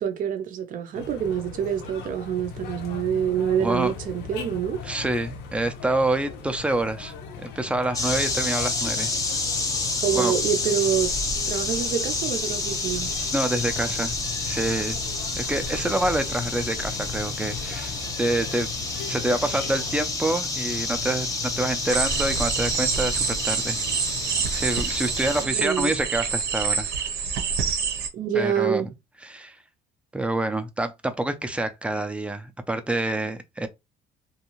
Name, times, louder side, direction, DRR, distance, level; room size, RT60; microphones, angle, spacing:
voice 1, 0.0-4.8 10.0-11.1 11.5-13.1 25.5-25.9 28.1-28.9, right 8 dB, 55° right, 0.6 m, -26 dB
sound 1, 0.9-20.0, left 6 dB, 85° left, 0.6 m, -39 dB
voice 2, 3.6-3.9 4.8-9.1 10.1-10.3 13.3-14.2 14.4-15.0 15.4-18.7 19.1-21.3 21.6-23.8 24.5-26.9 28.3-28.8 29.2-29.6 30.1-33.7, right 2 dB, 5° right, 0.4 m, -27 dB
sound 2, 7.9-25.4, left 3 dB, 20° left, 0.7 m, -29 dB
sound 3, 21.9-28.1, right 6 dB, 80° right, 0.9 m, -27 dB
2.6 x 2.3 x 2.9 m
cardioid pair, 110°, 17 cm